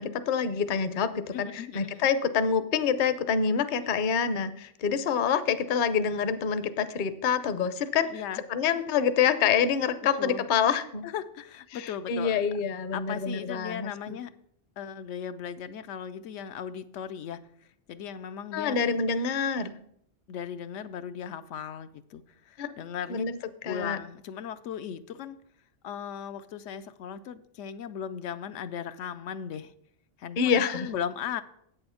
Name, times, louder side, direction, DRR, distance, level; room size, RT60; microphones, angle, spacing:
voice 1, 0.0-8.2 8.5-11.0 11.7-14.2 18.5-19.7 22.6-22.7 23.1-23.4 23.6-24.0 30.4-30.9, left 7 dB, 50° left, 12 dB, 0.7 m, -27 dB
voice 2, 1.3-2.1 8.1-8.4 10.2-10.4 11.0-12.4 12.9-14.3 14.8-17.4 17.9-18.8 19.6-19.7 20.3-23.2 23.6-25.4 25.8-29.7 30.2-31.4, left 8 dB, 85° left, 10 dB, 0.9 m, -37 dB
8.5 x 7.0 x 5.6 m, 0.70 s
omnidirectional pair, 1.2 m